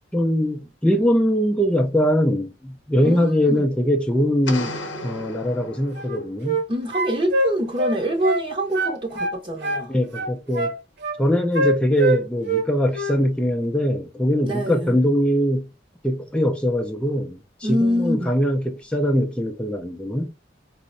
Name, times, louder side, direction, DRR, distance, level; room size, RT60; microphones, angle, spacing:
voice 1, 0.1-4.8 5.0-6.6 9.9-10.7 11.2-15.7 16.0-20.3, equal, 5° left, 0.4 m, -22 dB
voice 2, 3.0-3.6 6.7-9.9 14.4-15.0 17.6-18.3, equal, 30° right, 0.7 m, -25 dB
sound 1, 4.5-6.4, left 2 dB, 85° left, 0.7 m, -34 dB
sound 2, 5.9-6.7 6.9-8.5 8.7-9.9 10.1-11.2 11.5-12.7 12.9-13.2, right 2 dB, 65° right, 1.0 m, -24 dB
5.0 x 2.1 x 2.5 m
head